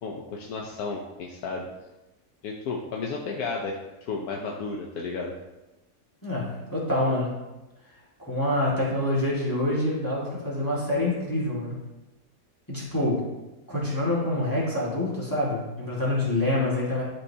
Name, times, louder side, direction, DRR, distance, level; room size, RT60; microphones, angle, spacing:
voice 1, 0.0-1.7 2.4-5.3, left 4 dB, 75° left, 0 dB, 1.2 m, -33 dB
voice 2, 6.2-7.4 8.2-11.8 12.7-13.3 13.7-17.0, left 1 dB, 15° left, -6 dB, 1.8 m, -26 dB
11.5 x 4.6 x 2.8 m, 1.0 s
omnidirectional pair, 1.6 m